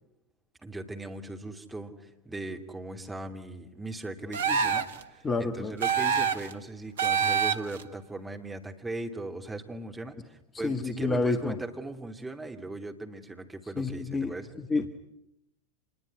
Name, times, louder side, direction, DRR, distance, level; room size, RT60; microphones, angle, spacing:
voice 1, 0.6-14.5, right 2 dB, 10° right, 4 dB, 2.7 m, -39 dB
sound 1, 4.3-5.0 5.8-6.5 7.0-7.8, right 6 dB, 65° right, 1.4 m, -26 dB
voice 2, 5.2-5.8 10.6-11.5 13.8-14.3 14.7-14.9, left 3 dB, 15° left, 10 dB, 1.3 m, -28 dB
26.5 x 21.5 x 9.5 m, 0.85 s
figure-of-eight pair, 90°, 0 cm